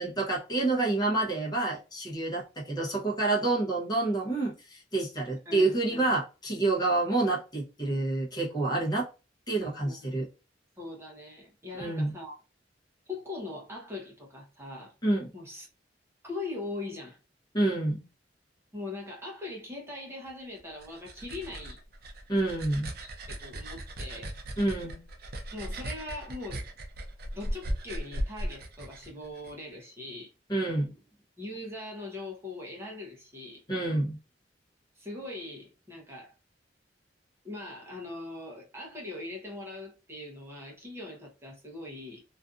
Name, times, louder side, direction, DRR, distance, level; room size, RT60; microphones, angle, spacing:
voice 1, 0.0-9.1 9.5-10.3 11.7-12.1 15.0-15.3 17.5-18.1 22.3-22.9 24.6-25.0 30.5-30.9 33.7-34.2, right 2 dB, 25° left, 0.8 m, -28 dB
voice 2, 5.5-6.2 9.5-10.1 10.8-12.4 13.1-14.9 15.3-15.7 16.2-17.2 18.7-21.8 23.0-24.3 25.5-26.6 27.3-30.3 31.4-33.6 35.0-36.3 37.4-42.2, left 2 dB, 15° right, 0.7 m, -41 dB
sound 1, 20.6-29.5, right 1 dB, 55° right, 0.5 m, -37 dB
2.5 x 2.5 x 2.3 m
head